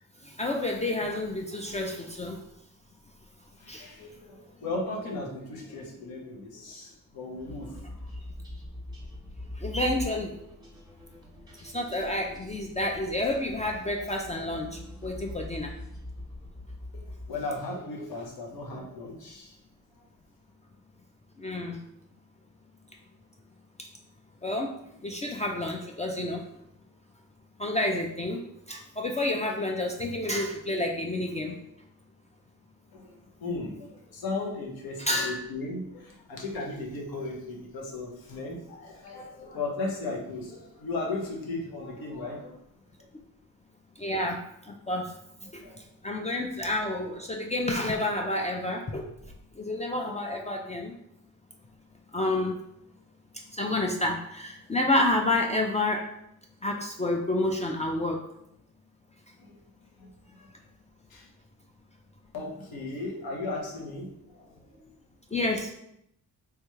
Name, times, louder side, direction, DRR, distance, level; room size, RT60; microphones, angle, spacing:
voice 1, 0.2-2.4 3.7-3.9 9.5-10.3 11.6-15.8 21.4-21.8 24.4-24.8 25.0-26.5 27.6-31.6 35.0-35.4 44.0-45.1 45.5-49.1 49.5-50.9 52.1-52.6 53.5-56.1 56.6-58.2 65.3-65.7, left 1 dB, 20° left, 1 dB, 0.4 m, -29 dB
voice 2, 3.6-7.8 16.9-19.6 32.9-42.6 45.4-45.8 59.4-59.5 60.0-60.1 61.1-61.3 62.3-64.9, left 2 dB, 80° left, -1 dB, 0.9 m, -36 dB
sound 1, 7.4-17.6, left 1 dB, 10° right, 1.0 m, -42 dB
3.3 x 2.3 x 3.1 m, 0.76 s
cardioid pair, 65°, 36 cm